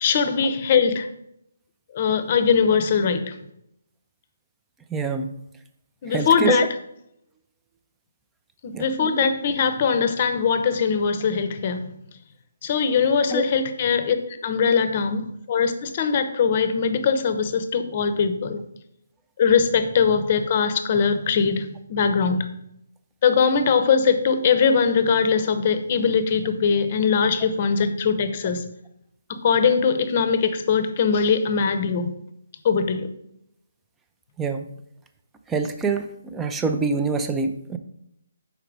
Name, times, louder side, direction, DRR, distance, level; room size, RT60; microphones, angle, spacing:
voice 1, 0.0-1.1 1.9-3.4 6.0-6.7 8.8-11.9 12.6-14.2 14.4-18.6 19.4-22.5 23.2-28.6 29.3-32.1 32.6-33.1, left 6 dB, 35° left, 0.7 m, -21 dB
voice 2, 4.9-5.3 6.1-6.6 8.7-8.9 13.3-13.4 34.4-34.7 35.5-37.8, right 4 dB, 10° right, 0.5 m, -25 dB
5.8 x 4.6 x 4.6 m
figure-of-eight pair, 140°, 0 cm